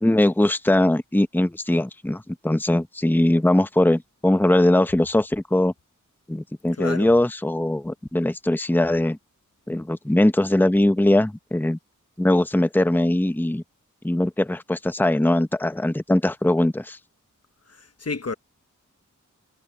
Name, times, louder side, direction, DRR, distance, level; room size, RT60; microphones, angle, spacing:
voice 1, 0.0-5.7 6.3-9.2 9.7-11.8 12.2-13.6 14.0-17.0, left 1 dB, 5° left, 0.9 m, -21 dB
voice 2, 6.7-7.2 17.7-18.4, left 4 dB, 50° left, 1.3 m, -31 dB
cardioid pair, 45°, 32 cm